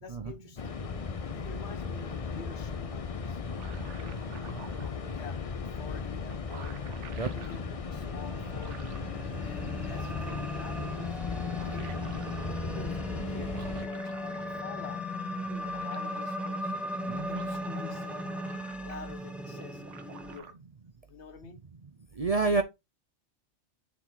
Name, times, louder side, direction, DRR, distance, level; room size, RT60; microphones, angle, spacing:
voice 1, 0.0-0.9 1.3-4.2 4.7-5.4 5.8-6.8 7.3-8.9 9.4-12.0 12.5-14.3 14.6-15.1 15.5-16.7 17.3-18.3 18.8-20.6 21.1-21.6, left 5 dB, 65° left, 1.3 m, -48 dB
sound 1, 0.6-13.9, left 5 dB, 35° left, 0.6 m, -36 dB
sound 2, 3.2-4.9 5.9-6.0 6.2-7.6 8.3-9.1 9.6-10.7 11.3-12.5 13.4-14.8 15.1-15.2 15.4-16.6 17.0-19.2 19.5-20.5, right 7 dB, 75° right, 1.2 m, -51 dB
sound 3, 7.5-20.4, left 1 dB, ahead, 0.8 m, -37 dB
voice 2, 17.1-17.4 22.2-22.6, right 3 dB, 40° right, 0.6 m, -28 dB
7.1 x 4.2 x 3.9 m
omnidirectional pair, 1.3 m